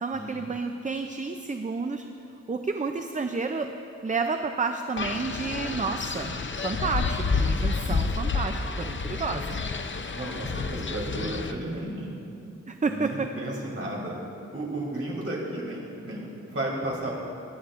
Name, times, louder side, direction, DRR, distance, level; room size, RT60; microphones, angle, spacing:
voice 1, 0.0-2.0 2.5-3.7 4.0-9.6 12.7-13.3, right 4 dB, 25° right, 6 dB, 0.4 m, -30 dB
Wind, 5.0-11.5, left 4 dB, 40° left, 0.6 m, -29 dB
voice 2, 9.3-9.7 10.2-12.1 12.8-14.1 14.5-17.2, right 1 dB, 50° right, -4 dB, 2.9 m, -33 dB
21.5 x 9.9 x 2.5 m, 2.7 s
wide cardioid pair, 95°, 29 cm